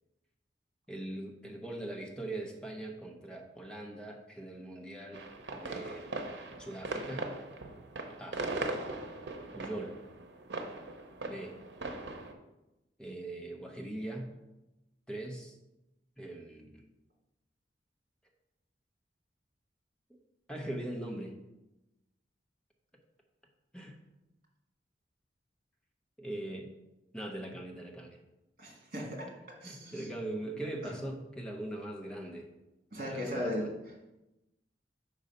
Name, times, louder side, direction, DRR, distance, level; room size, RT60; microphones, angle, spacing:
voice 1, 0.9-5.2 5.5-6.1 6.6-7.3 8.2-8.4 9.5-10.0 11.2-11.6 13.0-14.4 15.1-15.6 16.2-16.8 20.5-21.4 23.7-24.0 26.2-26.7 27.1-28.2 29.6-32.5 33.0-33.7, right 1 dB, 5° left, 0 dB, 0.8 m, -41 dB
sound 1, 5.1-12.3, right 2 dB, 90° right, 0.7 m, -39 dB
voice 2, 28.6-29.3 29.6-30.0 32.9-33.6, left 1 dB, 55° right, -1 dB, 1.8 m, -36 dB
5.3 x 4.0 x 5.3 m, 0.97 s
head